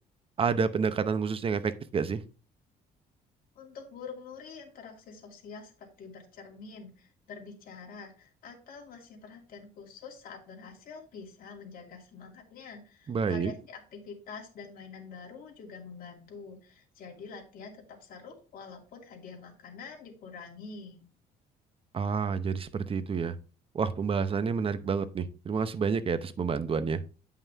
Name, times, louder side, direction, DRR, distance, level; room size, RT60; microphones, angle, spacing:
voice 1, 0.4-2.2 13.1-13.5 21.9-23.3 23.7-27.0, right 5 dB, 35° right, 12 dB, 0.8 m, -29 dB
voice 2, 3.5-21.0, left 5 dB, 60° left, 0 dB, 2.6 m, -46 dB
8.9 x 5.7 x 3.5 m, 0.35 s
cardioid pair, 110°, 17 cm